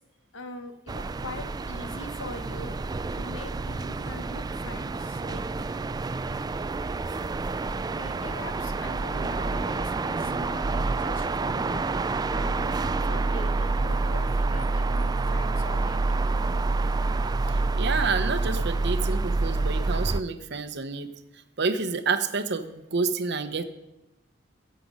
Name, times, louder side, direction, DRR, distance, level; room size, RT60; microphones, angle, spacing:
voice 1, 0.3-5.4 7.9-16.0, left 1 dB, 80° left, 7 dB, 1.2 m, -42 dB
sound 1, 0.9-20.2, right 3 dB, 20° right, 0.3 m, -28 dB
voice 2, 17.7-21.1 21.6-23.6, right 4 dB, 60° right, 10 dB, 0.9 m, -28 dB
16.5 x 7.6 x 5.4 m, 0.98 s
head